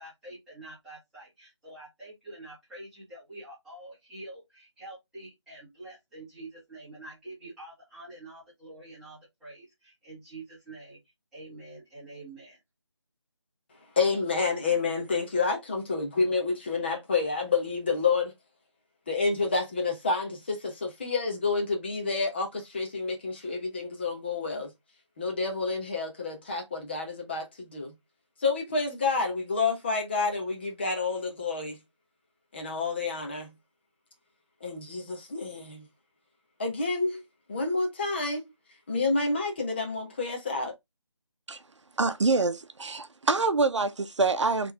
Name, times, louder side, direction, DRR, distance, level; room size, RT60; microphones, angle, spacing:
voice 1, 0.0-11.0 11.3-12.6, right 2 dB, ahead, 1.4 m, -46 dB
voice 2, 14.0-18.3 19.1-24.7 25.2-27.9 28.4-31.8 32.5-33.5 34.6-35.9 36.6-37.2 37.5-38.5 38.9-40.7, left 4 dB, 20° left, 1.0 m, -29 dB
voice 3, 42.0-44.7, right 3 dB, 70° right, 0.8 m, -25 dB
4.3 x 3.3 x 3.4 m
figure-of-eight pair, 170°, 16 cm